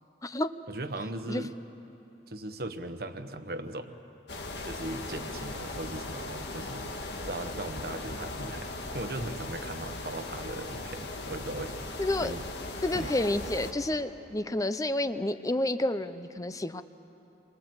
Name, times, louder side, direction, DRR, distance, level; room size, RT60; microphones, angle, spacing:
voice 1, 0.7-1.5 2.3-4.0 4.6-6.9 7.3-12.4 12.9-13.1, right 2 dB, 60° right, 8 dB, 1.2 m, -38 dB
sound 1, 4.3-13.7, left 2 dB, 75° left, 1.9 m, -38 dB
voice 2, 12.0-12.3 12.8-16.8, left 1 dB, 20° left, 11 dB, 0.6 m, -29 dB
28.5 x 23.0 x 8.0 m, 2.9 s
head